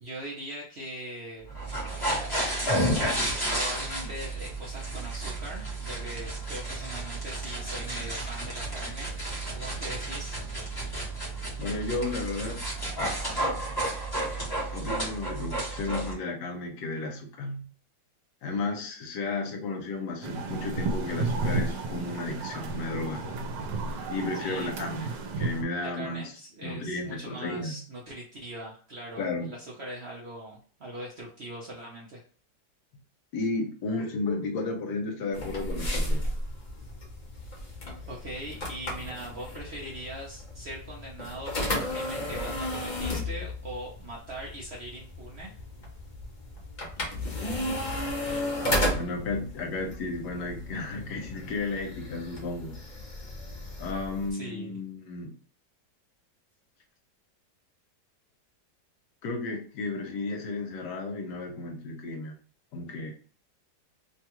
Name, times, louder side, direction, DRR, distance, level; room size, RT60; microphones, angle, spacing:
voice 1, 0.0-1.5 2.8-9.1 9.5-10.4 24.3-24.7 25.8-32.2 38.1-45.6 54.3-54.8, right 1 dB, 55° right, -4 dB, 0.7 m, -41 dB
sound 1, 1.5-16.1, right 1 dB, 15° left, 1.0 m, -32 dB
voice 2, 11.6-12.6 14.7-17.7 18.4-23.5 24.1-25.1 25.4-26.2 26.6-27.8 29.2-29.5 33.3-36.3 48.9-52.8 53.8-55.3 59.2-62.3 62.7-63.1, left 3 dB, 75° left, 3 dB, 1.3 m, -33 dB
sound 2, 20.2-25.6, right 3 dB, 80° right, 1.3 m, -32 dB
sound 3, 35.3-54.3, left 1 dB, 45° left, 0.6 m, -34 dB
3.2 x 2.3 x 2.9 m, 0.41 s
omnidirectional pair, 1.9 m